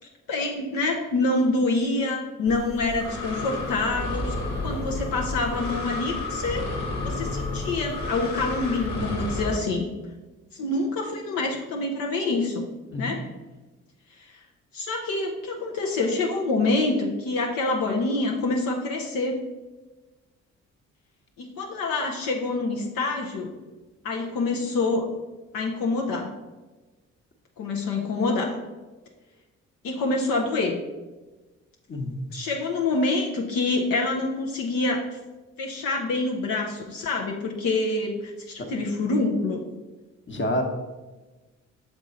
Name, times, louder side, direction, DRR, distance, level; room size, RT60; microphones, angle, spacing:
voice 1, 0.3-4.3 4.6-6.6 7.0-9.9 10.5-12.7 13.0-13.3 14.2-14.4 14.7-19.4 21.4-23.5 24.0-25.1 25.5-26.3 27.6-28.6 29.8-30.8 32.3-35.0 35.6-39.6, left 3 dB, 75° left, 0 dB, 0.8 m, -26 dB
Breathing, 2.5-9.6, left 2 dB, 55° left, 1.5 m, -31 dB
voice 2, 31.9-32.3 38.6-38.7 40.3-40.6, left 1 dB, 35° left, 3 dB, 1.2 m, -28 dB
6.5 x 3.6 x 4.1 m, 1.2 s
hypercardioid pair, 50°, 34 cm